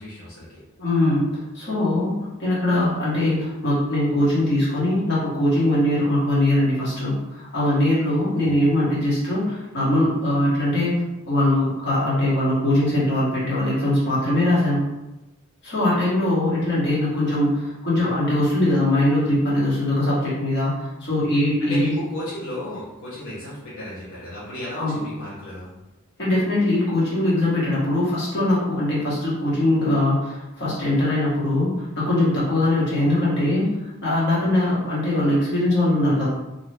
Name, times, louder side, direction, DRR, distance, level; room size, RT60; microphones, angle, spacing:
voice 1, 0.0-0.6 8.4-8.5 21.6-25.7, left 1 dB, 80° left, -8 dB, 0.8 m, -34 dB
voice 2, 0.8-14.9 15.6-20.7 21.0-21.9 24.8-25.0 26.2-33.7 34.0-36.3, left 1 dB, 55° left, -7 dB, 1.1 m, -21 dB
2.6 x 2.3 x 3.2 m, 0.99 s
head